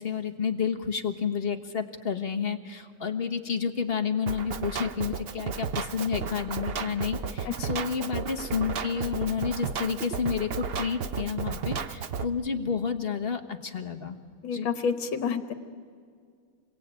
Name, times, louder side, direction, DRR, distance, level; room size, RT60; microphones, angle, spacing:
voice 1, 0.0-14.2 14.5-14.7, left 6 dB, 35° left, 6 dB, 1.2 m, -30 dB
Drum kit, 4.3-12.3, right 6 dB, 90° right, 0.5 m, -33 dB
voice 2, 7.4-7.8 14.4-15.5, left 6 dB, 75° left, 9 dB, 2.1 m, -29 dB
27.5 x 22.0 x 9.0 m, 2.2 s
omnidirectional pair, 2.2 m